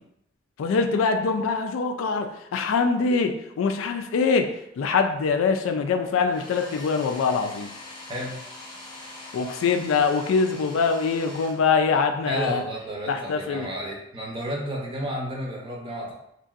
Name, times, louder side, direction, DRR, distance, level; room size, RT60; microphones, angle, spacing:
voice 1, 0.6-7.7 9.3-12.6 13.1-13.7, left 5 dB, 85° left, 6 dB, 0.3 m, -24 dB
Domestic sounds home sounds, 6.2-12.1, left 2 dB, 25° left, 0.8 m, -43 dB
voice 2, 12.3-16.1, right 1 dB, 25° right, -2 dB, 0.6 m, -32 dB
2.9 x 2.6 x 2.4 m, 0.79 s
head